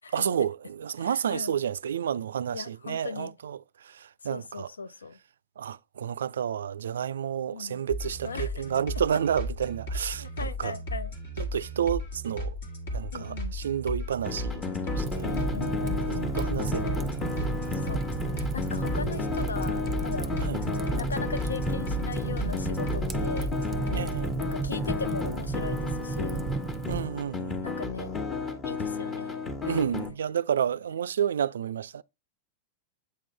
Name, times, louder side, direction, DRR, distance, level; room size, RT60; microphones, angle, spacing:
voice 1, 0.1-4.7 5.6-10.8 11.4-12.6 12.9-14.7 15.0-15.3 16.1-16.9 17.3-17.9 18.9-19.1 20.4-20.6 23.9-24.4 26.9-27.7 29.6-32.0, right 8 dB, 70° right, 0.3 m, -30 dB
voice 2, 1.0-1.5 2.5-3.3 4.3-5.2 7.5-7.8 8.2-8.6 10.2-11.1 13.1-13.6 15.2-16.4 17.8-18.1 18.5-20.3 21.0-23.5 23.9-24.1 24.4-26.4 27.6-28.2 28.6-29.3 29.7-30.1, left 4 dB, 80° left, 0.5 m, -38 dB
sound 1, 7.9-24.1, equal, 65° left, 1.6 m, -35 dB
sound 2, 14.2-30.1, left 4 dB, 25° left, 1.2 m, -33 dB
Fire, 14.9-27.1, right 5 dB, 20° right, 0.7 m, -33 dB
8.4 x 3.7 x 3.3 m
figure-of-eight pair, 95°, 0 cm